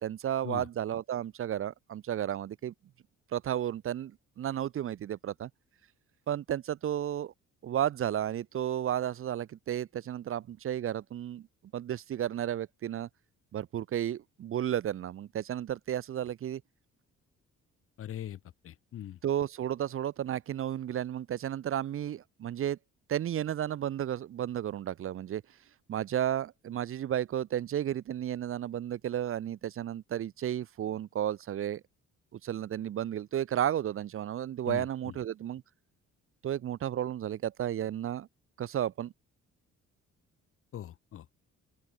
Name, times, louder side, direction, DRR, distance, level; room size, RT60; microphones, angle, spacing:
voice 1, 0.0-2.7 3.3-5.5 6.3-7.3 7.6-11.5 11.7-13.1 13.5-16.6 19.2-22.8 23.1-25.4 25.9-31.8 32.3-35.6 36.4-38.3 38.6-39.1, right 10 dB, 45° right, 0.5 m, -33 dB
voice 2, 18.0-18.4 18.6-19.2 34.7-35.1 40.7-41.3, left 11 dB, 50° left, 0.5 m, -41 dB
open air
cardioid pair, 90°, 30 cm